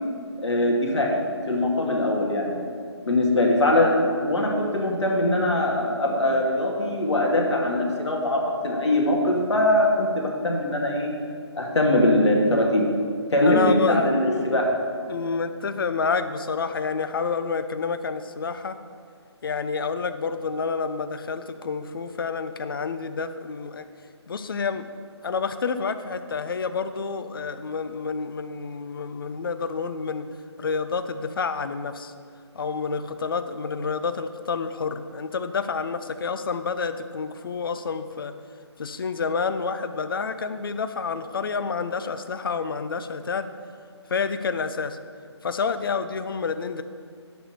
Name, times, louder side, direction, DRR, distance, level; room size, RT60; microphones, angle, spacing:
voice 1, 0.4-2.6 3.0-11.1 11.6-12.9 13.3-14.7, left 1 dB, 75° left, -1 dB, 2.4 m, -22 dB
voice 2, 13.4-14.3 15.1-18.8 19.4-23.8 24.3-24.9 25.2-30.3 30.6-32.1 32.5-38.3 38.8-43.5 44.1-45.0 45.4-46.8, left 5 dB, 50° left, 11 dB, 0.6 m, -28 dB
11.0 x 4.3 x 6.7 m, 2.2 s
figure-of-eight pair, 160°, 15 cm